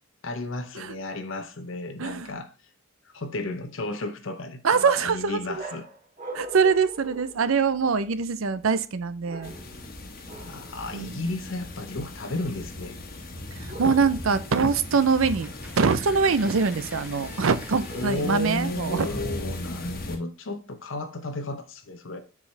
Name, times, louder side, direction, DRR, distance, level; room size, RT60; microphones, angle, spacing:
voice 1, 0.2-2.5 3.0-5.8 10.5-13.0 17.9-22.2, left 2 dB, 65° left, 0.8 m, -33 dB
voice 2, 2.0-2.3 4.6-5.6 6.3-9.5 10.9-11.3 13.5-19.1, right 5 dB, 75° right, 0.6 m, -24 dB
sound 1, 5.6-8.1 9.2-9.9 10.3-10.7 13.7-14.4 17.9-18.6, right 2 dB, 40° right, 1.9 m, -42 dB
sound 2, 9.4-20.2, left 1 dB, 45° left, 1.4 m, -38 dB
sound 3, 14.3-14.6 14.9-20.1, right 1 dB, 5° right, 0.9 m, -48 dB
7.0 x 4.7 x 3.3 m
head